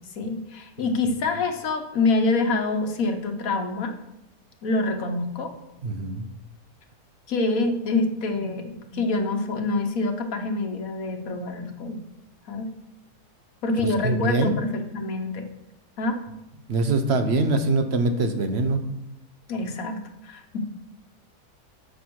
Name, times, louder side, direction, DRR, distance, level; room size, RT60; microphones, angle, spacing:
voice 1, 0.1-3.9 4.6-5.5 7.3-12.0 12.5-12.7 13.6-15.5 16.0-16.2 19.5-20.6, left 3 dB, 60° left, 5 dB, 1.5 m, -26 dB
voice 2, 5.8-6.3 14.0-14.5 16.7-18.8, right 2 dB, 45° right, 8 dB, 1.1 m, -23 dB
10.5 x 7.5 x 4.7 m, 0.86 s
omnidirectional pair, 1.7 m